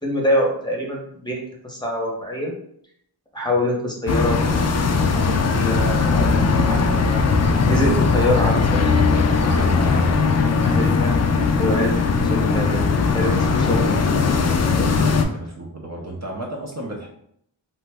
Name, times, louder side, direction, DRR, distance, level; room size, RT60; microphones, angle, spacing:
voice 1, 0.0-2.5 3.3-7.2 7.7-8.6 9.0-10.1 10.6-11.1 11.6-13.9 14.6-14.9, left 1 dB, 10° left, -1 dB, 0.8 m, -26 dB
sound 1, 4.1-15.2, left 4 dB, 40° left, 0.4 m, -19 dB
voice 2, 15.1-17.1, right 1 dB, 35° right, -1 dB, 0.6 m, -33 dB
2.9 x 2.1 x 3.4 m, 0.69 s
cardioid pair, 55°, 44 cm